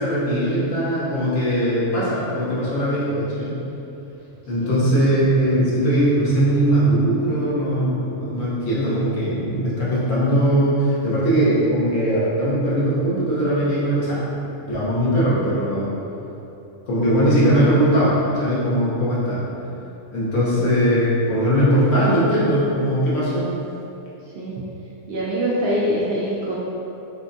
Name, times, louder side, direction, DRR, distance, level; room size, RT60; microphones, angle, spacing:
voice 1, 0.0-3.6 4.5-14.3 14.7-15.9 16.9-19.4 20.1-23.5, right 1 dB, 70° left, -9 dB, 1.3 m, -20 dB
voice 2, 4.6-5.1 17.5-17.7 20.5-20.6 24.3-24.6 25.1-26.5, equal, 65° right, -6 dB, 0.7 m, -25 dB
3.6 x 3.4 x 2.6 m, 2.9 s
omnidirectional pair, 1.4 m